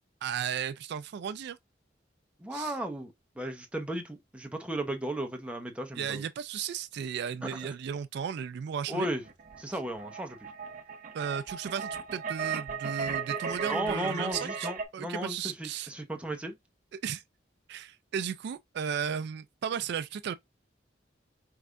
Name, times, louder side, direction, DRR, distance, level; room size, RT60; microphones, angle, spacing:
voice 1, 0.2-1.6 2.5-2.7 6.0-9.1 11.1-15.9 16.9-17.2 17.7-20.3, right 8 dB, 65° right, 0.3 m, -35 dB
voice 2, 2.4-6.2 7.4-7.7 8.9-9.2 9.6-10.4 13.6-16.5, right 1 dB, 5° right, 0.8 m, -35 dB
sound 1, 9.2-14.8, right 6 dB, 45° right, 0.9 m, -36 dB
4.7 x 3.2 x 2.5 m
head